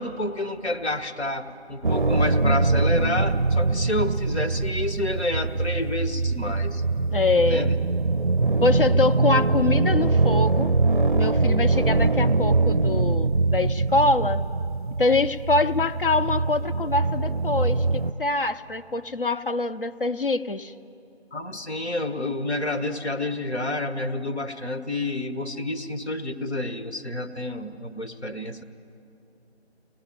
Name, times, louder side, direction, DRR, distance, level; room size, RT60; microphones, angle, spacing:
voice 1, 0.0-6.8 7.4-7.8 21.3-28.6, left 2 dB, 75° left, 8 dB, 1.6 m, -29 dB
sound 1, 1.8-18.1, right 3 dB, 50° right, 0.5 m, -23 dB
voice 2, 7.1-7.7 8.6-10.7 11.1-14.4 15.0-20.7, left 3 dB, 55° left, 10 dB, 0.8 m, -24 dB
25.0 x 19.5 x 8.8 m, 2.8 s
figure-of-eight pair, 175°, 33 cm